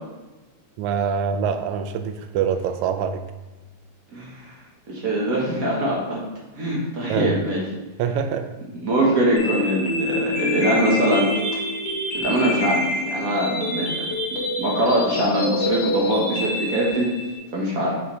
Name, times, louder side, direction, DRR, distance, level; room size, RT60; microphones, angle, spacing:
voice 1, 0.8-3.2 7.1-7.4 8.0-8.5, right 7 dB, 80° right, 7 dB, 1.8 m, -24 dB
voice 2, 4.1-4.5 4.9-6.2 6.6-7.6 8.8-11.3 12.2-13.9 14.6-17.1 17.5-17.9, right 1 dB, 60° right, -4 dB, 0.9 m, -22 dB
sound 1, 9.4-17.4, left 1 dB, 80° left, 2.9 m, -26 dB
6.1 x 6.0 x 3.1 m, 1.1 s
omnidirectional pair, 3.4 m